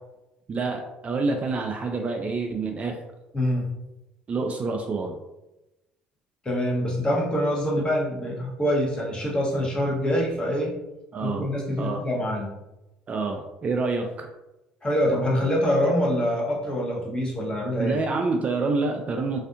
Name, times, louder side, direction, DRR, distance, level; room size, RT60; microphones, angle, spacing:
voice 1, 0.5-3.0 4.3-5.2 11.1-11.5 11.8-12.0 13.1-14.3 17.8-19.4, right 3 dB, 35° right, 3 dB, 0.3 m, -27 dB
voice 2, 3.3-3.7 6.4-10.7 11.2-12.5 14.8-18.0, equal, 25° left, -3 dB, 1.0 m, -25 dB
2.5 x 2.4 x 2.4 m, 0.97 s
hypercardioid pair, 65°, 4 cm